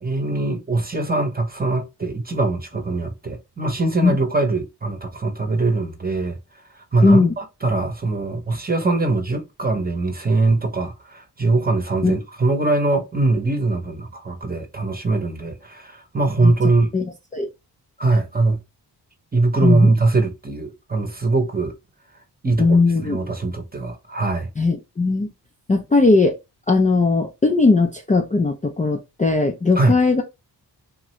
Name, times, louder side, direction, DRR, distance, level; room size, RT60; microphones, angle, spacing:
voice 1, 0.0-6.4 6.9-16.9 18.0-18.6 19.3-21.7 22.4-24.5 29.8-29.9, right 2 dB, 20° right, 0.8 m, -22 dB
voice 2, 7.0-7.3 12.0-12.2 16.4-16.5 16.9-17.0 17.3-17.5 19.6-19.9 22.6-23.2 24.6-25.3 25.7-26.4 26.7-30.2, left 3 dB, 20° left, 0.4 m, -18 dB
2.9 x 2.5 x 3.0 m
wide cardioid pair, 95°, 42 cm